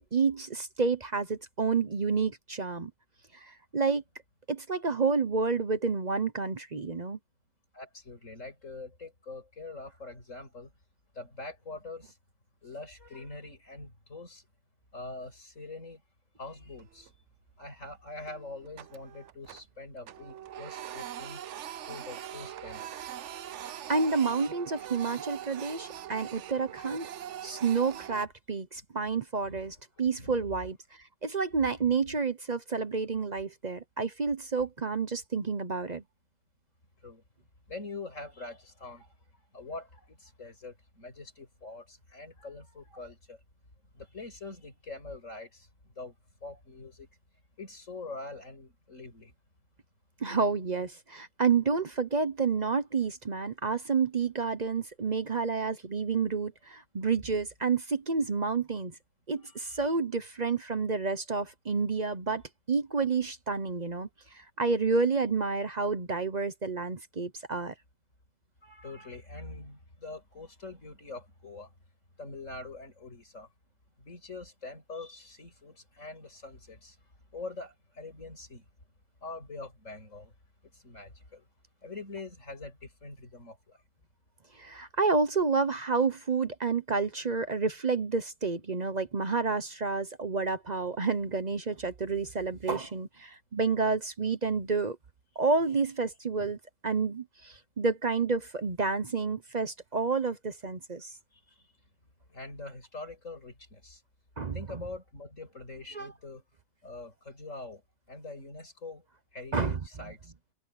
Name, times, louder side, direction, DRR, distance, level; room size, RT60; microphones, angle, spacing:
voice 1, 0.0-2.9 3.4-4.0 4.5-7.2 23.9-27.1 27.4-30.8 31.2-36.0 50.2-59.0 59.3-62.4 62.7-64.1 64.3-67.7 84.6-95.0 95.4-96.6 96.8-101.1 104.4-104.8 105.9-106.1 109.5-109.8, right 4 dB, 35° right, 1.0 m, -29 dB
voice 2, 7.7-10.7 11.1-12.2 12.6-14.4 14.9-16.0 16.4-17.1 17.6-21.4 21.9-23.1 29.0-30.5 31.8-32.2 37.0-37.2 37.7-39.1 39.5-43.4 43.9-46.2 46.4-47.1 47.6-49.3 59.4-59.8 68.6-71.7 72.2-73.5 74.0-77.0 77.3-78.6 79.2-80.3 80.7-81.5 81.8-83.8 101.3-101.7 102.3-104.0 104.5-106.4 106.8-107.8 108.1-109.0 109.3-110.3, left 3 dB, 90° left, 6.5 m, -44 dB
Printer, 16.7-17.3 17.6-17.8 18.2-19.8 20.0-28.3, right 11 dB, 70° right, 1.0 m, -42 dB
omnidirectional pair, 1.3 m